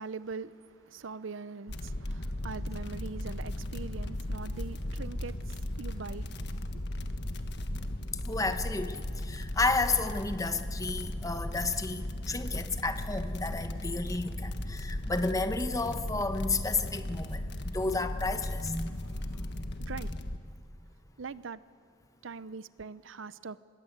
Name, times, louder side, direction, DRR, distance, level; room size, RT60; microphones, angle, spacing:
voice 1, 0.0-6.4 6.7-6.8 19.8-20.1 21.2-21.6 22.2-23.6, right 4 dB, 90° right, 0.7 m, -42 dB
sound 1, 1.7-20.4, left 1 dB, 60° left, 1.5 m, -36 dB
voice 2, 8.2-19.8 20.1-20.2, left 3 dB, 20° left, 1.1 m, -32 dB
26.5 x 21.5 x 8.1 m
head